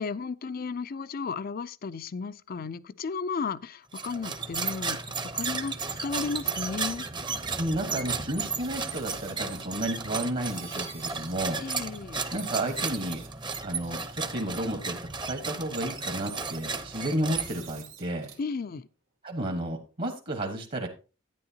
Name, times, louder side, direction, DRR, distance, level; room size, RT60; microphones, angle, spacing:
voice 1, 0.0-5.7 6.0-7.0 11.6-12.2 18.4-18.9, left 5 dB, 50° left, 0.4 m, -34 dB
sound 1, 3.9-17.9, right 4 dB, 25° right, 0.8 m, -34 dB
voice 2, 7.6-11.6 12.3-13.2 13.6-15.0 15.3-18.3 19.2-20.9, right 1 dB, 45° right, 1.3 m, -32 dB
sound 2, 8.6-9.8 10.5-11.4 11.7-11.8 12.1-13.4 13.8-14.2 15.2-15.3 15.6-16.8 17.3-18.4, right 9 dB, 85° right, 2.2 m, -48 dB
10.5 x 9.7 x 2.8 m
head